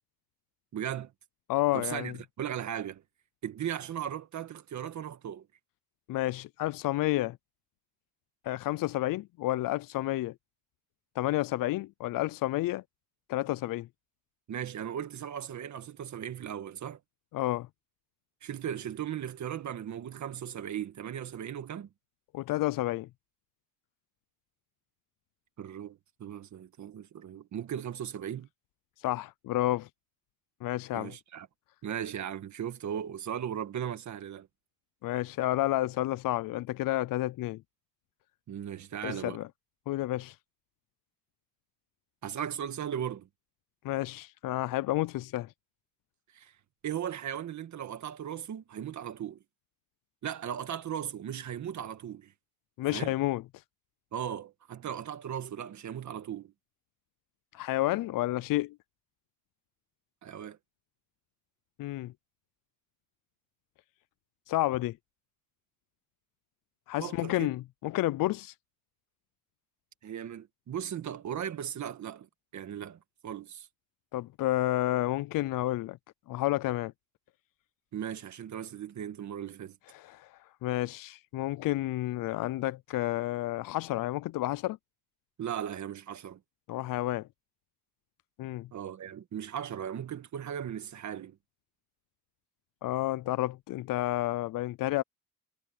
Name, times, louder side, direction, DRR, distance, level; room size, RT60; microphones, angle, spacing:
voice 1, 0.7-1.1 1.7-3.0 3.4-5.5 14.5-17.0 18.4-21.9 25.6-28.5 30.9-31.5 31.8-34.5 38.5-39.4 42.2-43.3 46.3-46.5 46.8-49.4 50.2-52.3 52.9-53.1 54.1-56.5 60.2-60.6 67.0-67.5 70.0-72.3 72.5-73.7 77.9-79.8 85.4-86.4 88.7-91.4, right 9 dB, 55° right, 1.7 m, -37 dB
voice 2, 1.5-2.1 6.1-7.4 8.4-10.3 11.2-12.8 13.3-13.9 17.3-17.7 22.3-23.1 29.0-29.9 30.6-31.1 35.0-37.6 39.0-39.5 39.9-40.4 43.8-45.5 52.8-53.4 57.5-58.8 61.8-62.1 64.5-65.0 66.9-68.5 74.1-76.0 76.3-76.9 79.9-84.8 86.7-87.3 88.4-88.7 92.8-95.0, left 16 dB, 75° left, 0.5 m, -30 dB
cardioid pair, 145°, 34 cm